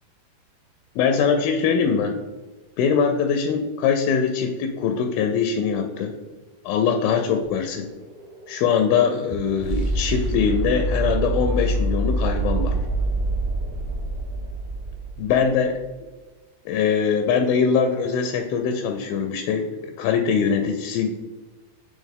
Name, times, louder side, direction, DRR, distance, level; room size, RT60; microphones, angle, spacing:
voice 1, 1.0-2.1 2.8-6.1 6.6-7.9 8.5-12.8 15.2-15.8 16.7-19.7 20.0-21.1, left 6 dB, 85° left, 5 dB, 2.3 m, -22 dB
sound 1, 7.4-15.5, right 2 dB, 75° right, 1.8 m, -26 dB
8.3 x 3.4 x 3.5 m, 1.2 s
omnidirectional pair, 4.3 m